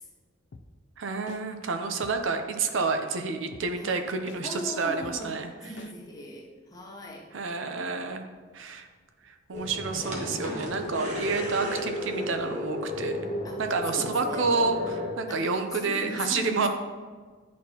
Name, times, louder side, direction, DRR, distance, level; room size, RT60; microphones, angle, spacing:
sound 1, 0.5-0.6 1.3-1.4 2.0-2.1 2.8-2.9 3.5-3.6 4.3-4.4 5.0-5.1 5.8-5.9, left 3 dB, 55° left, 0.4 m, -46 dB
voice 1, 1.0-5.7 7.3-8.2 8.5-8.9 9.3-13.3 13.6-16.7, right 4 dB, 70° right, 6 dB, 0.6 m, -29 dB
voice 2, 4.4-7.3 10.9-11.1 13.4-13.6 13.9-14.4 15.3-16.7, left 1 dB, 20° left, 0 dB, 0.7 m, -40 dB
sound 2, 9.5-15.1, left 1 dB, 35° right, 1.1 m, -33 dB
10.5 x 4.2 x 2.9 m, 1.5 s
head